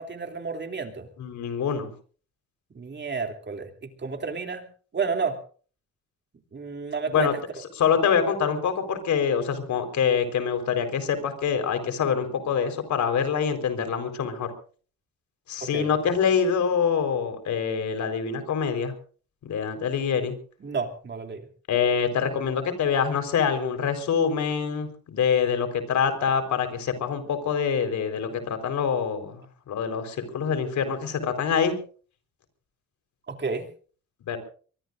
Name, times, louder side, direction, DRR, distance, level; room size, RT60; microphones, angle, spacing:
voice 1, 0.0-1.1 2.7-4.6 4.9-5.4 6.5-7.3 15.6-15.9 20.6-21.5 33.3-33.7, right 5 dB, 35° right, 5 dB, 3.0 m, -31 dB
voice 2, 1.2-1.9 7.1-7.3 7.8-14.5 15.5-18.9 19.4-20.3 21.7-31.7 34.3-34.4, left 7 dB, 70° left, 8 dB, 4.5 m, -25 dB
23.5 x 22.5 x 2.6 m, 0.41 s
cardioid pair, 90°, 30 cm